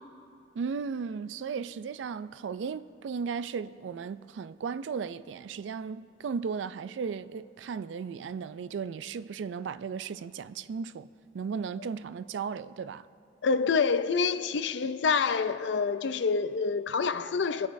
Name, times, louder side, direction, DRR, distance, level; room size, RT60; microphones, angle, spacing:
voice 1, 0.5-11.1 11.3-13.1, right 6 dB, 75° right, 0.3 m, -35 dB
voice 2, 13.4-17.7, left 5 dB, 65° left, 0.5 m, -27 dB
26.5 x 9.3 x 2.6 m
head